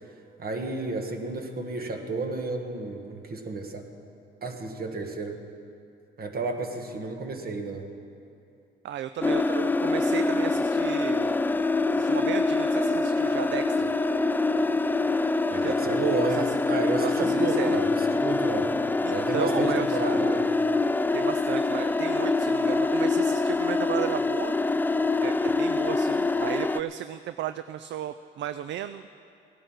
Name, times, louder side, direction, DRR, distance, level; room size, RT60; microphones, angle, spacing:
voice 1, 0.0-3.9 4.4-5.4 6.2-7.9 15.5-18.7 19.1-20.5, right 3 dB, 50° right, 4 dB, 1.6 m, -32 dB
voice 2, 8.8-11.4 11.9-13.9 15.6-16.6 17.0-17.8 19.0-20.0 21.1-24.6 25.2-29.1, right 11 dB, 65° right, 11 dB, 0.4 m, -34 dB
sound 1, 9.2-26.8, left 3 dB, 10° left, 0.3 m, -25 dB
17.0 x 11.0 x 6.3 m, 2.6 s
cardioid pair, 90°, 20 cm